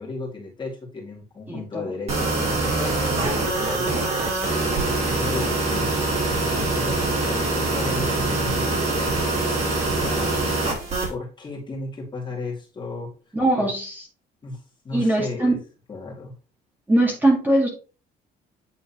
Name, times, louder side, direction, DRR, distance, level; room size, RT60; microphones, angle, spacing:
voice 1, 0.0-4.7 5.0-9.6 9.9-10.8 11.1-13.1 13.6-13.7 14.4-15.6 15.9-16.3, left 3 dB, 25° left, 2.3 m, -35 dB
voice 2, 1.5-1.8 13.3-14.0 14.9-15.5 16.9-17.7, right 1 dB, 10° right, 1.7 m, -21 dB
sound 1, 2.1-11.1, right 2 dB, 40° right, 3.0 m, -24 dB
8.7 x 3.8 x 2.9 m
cardioid pair, 110°, 17 cm